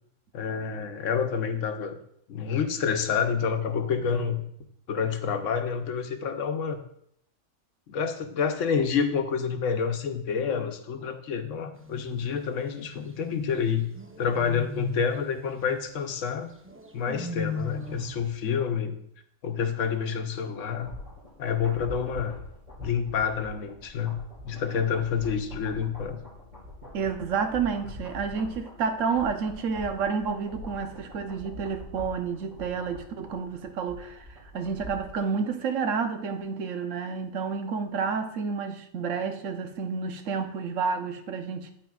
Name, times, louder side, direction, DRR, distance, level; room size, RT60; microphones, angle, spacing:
voice 1, 0.3-2.0 2.3-4.4 4.9-6.8 7.9-13.9 14.2-16.5 16.9-19.0 19.4-20.9 21.4-22.3 22.8-24.2 24.4-26.2, left 6 dB, 85° left, 1.1 m, -28 dB
sound 1, 11.7-12.7 14.0-15.2 16.7-18.3, left 2 dB, 20° right, 0.3 m, -37 dB
sound 2, 20.5-35.2 35.5-35.6, left 1 dB, 35° right, 3.9 m, -44 dB
voice 2, 26.9-34.2 34.5-41.7, right 5 dB, 85° right, 1.1 m, -30 dB
9.0 x 8.8 x 2.3 m
omnidirectional pair, 1.3 m